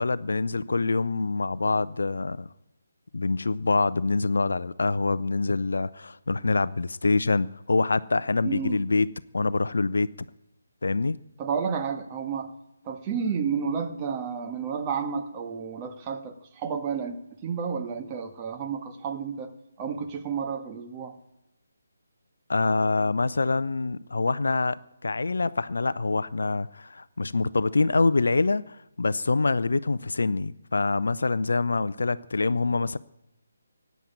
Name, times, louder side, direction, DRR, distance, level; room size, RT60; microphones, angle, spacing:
voice 1, 0.0-2.5 3.1-9.1 9.3-10.1 10.8-11.2 22.5-33.0, left 3 dB, 60° left, 0.6 m, -25 dB
voice 2, 8.4-8.8 11.4-12.5 12.8-17.2 17.4-19.5 19.8-21.2, right 6 dB, 20° right, 1.4 m, -31 dB
17.5 x 9.3 x 8.6 m
figure-of-eight pair, 145°, 0 cm